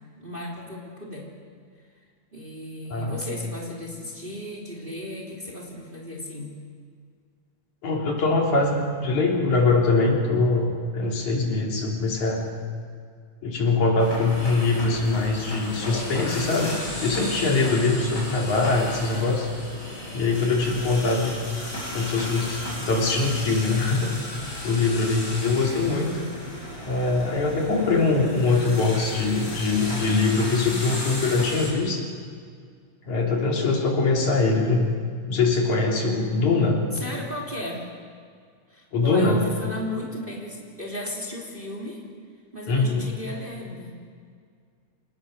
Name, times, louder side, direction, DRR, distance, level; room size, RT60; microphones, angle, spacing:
voice 1, 0.2-1.3 2.3-6.6 36.9-37.9 38.7-42.0 42.5-44.0, left 1 dB, 15° right, -3 dB, 3.1 m, -35 dB
voice 2, 7.8-12.5 13.4-16.8 17.0-19.5 20.1-21.3 21.9-24.1 24.6-26.2 26.9-32.0 33.1-34.9 35.3-36.8 38.9-39.4 42.7-43.1, left 3 dB, 65° left, -1 dB, 4.5 m, -23 dB
sound 1, 14.0-31.7, left 1 dB, 30° left, 7.1 m, -34 dB
27.5 x 19.0 x 6.6 m, 2.1 s
omnidirectional pair, 3.7 m